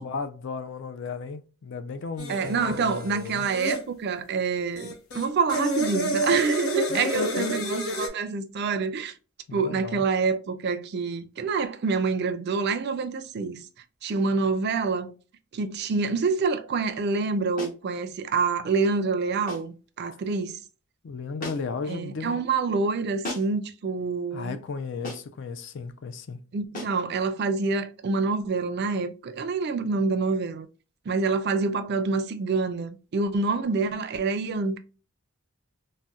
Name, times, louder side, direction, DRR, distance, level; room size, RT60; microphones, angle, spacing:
voice 1, 0.0-3.5 6.9-7.6 9.5-10.0 21.0-22.4 24.3-26.4, left 4 dB, 55° left, 0.4 m, -34 dB
sound 1, 2.2-3.8 4.8-8.1, equal, 85° left, 0.8 m, -29 dB
voice 2, 2.3-9.1 9.5-13.6 14.0-15.1 15.5-20.6 21.9-24.6 26.5-30.7 31.1-34.8, right 4 dB, 50° right, 0.4 m, -27 dB
sound 2, 17.6-17.9 19.5-19.8 21.4-21.8 23.2-23.7 25.0-25.4 26.7-27.1, left 1 dB, 40° left, 0.8 m, -37 dB
3.9 x 2.1 x 2.3 m
head